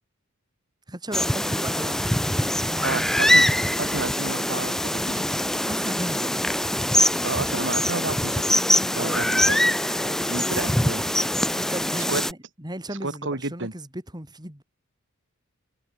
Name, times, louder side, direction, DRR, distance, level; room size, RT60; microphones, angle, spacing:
voice 1, 0.9-3.3 5.7-6.5 8.9-9.2 9.5-10.4 11.5-14.6, right 1 dB, 20° right, 5.1 m, -36 dB
sound 1, 1.1-12.3, left 1 dB, ahead, 0.3 m, -23 dB
voice 2, 2.8-3.5 3.8-5.2 7.2-8.4 9.0-9.6 10.3-11.1 12.1-12.2 13.0-13.7, right 3 dB, 60° right, 2.5 m, -31 dB
head